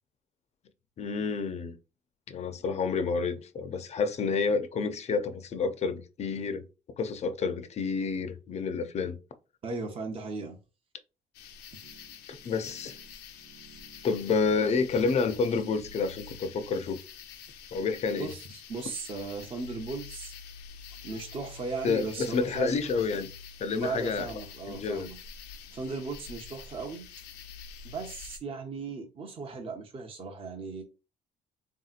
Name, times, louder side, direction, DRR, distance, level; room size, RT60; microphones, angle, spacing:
voice 1, 1.0-1.8 2.3-6.6 7.0-9.2 12.3-13.0 14.0-17.0 17.7-18.3 21.8-23.3 23.6-24.3 24.7-25.1, left 4 dB, 40° left, 0.5 m, -29 dB
voice 2, 9.6-10.6 18.2-20.3 21.0-22.8 23.7-25.2 25.7-27.0 27.8-30.8, right 4 dB, 35° right, 0.7 m, -37 dB
sound 1, 11.3-28.4, left 7 dB, 90° left, 0.6 m, -47 dB
sound 2, 11.8-16.9, right 7 dB, 70° right, 0.9 m, -58 dB
3.4 x 2.8 x 2.4 m
cardioid pair, 110°, 17 cm